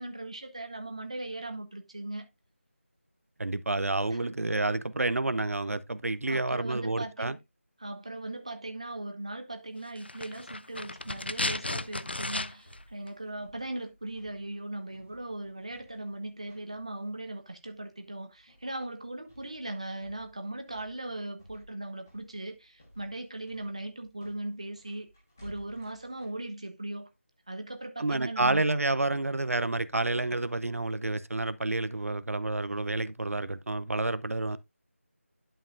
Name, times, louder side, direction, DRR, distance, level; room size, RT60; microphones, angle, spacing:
voice 1, 0.0-2.3 4.2-4.3 6.3-7.4 7.8-25.1 25.4-27.1 27.5-28.7, right 1 dB, 25° right, 0.8 m, -39 dB
voice 2, 3.4-7.4 28.0-34.6, right 2 dB, 85° right, 0.7 m, -29 dB
sound 1, 10.0-12.8 13.1-13.2, left 2 dB, 50° left, 0.4 m, -34 dB
sound 2, 12.6-26.3, equal, 10° left, 1.3 m, -57 dB
11.0 x 5.3 x 2.5 m
figure-of-eight pair, 180°, 8 cm